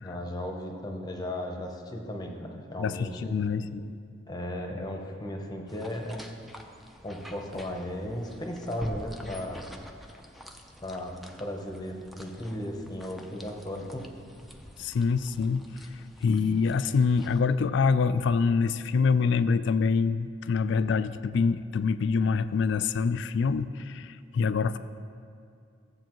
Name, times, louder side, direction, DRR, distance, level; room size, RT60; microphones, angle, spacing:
voice 1, 0.0-3.4 4.3-6.3 7.0-9.6 10.8-14.1, left 1 dB, 20° left, 2 dB, 0.8 m, -36 dB
voice 2, 2.8-3.9 14.8-15.7 16.2-24.8, left 5 dB, 65° left, 13 dB, 0.3 m, -25 dB
sound 1, 5.7-17.4, equal, ahead, 0.5 m, -46 dB
14.0 x 7.8 x 3.0 m, 2.4 s
head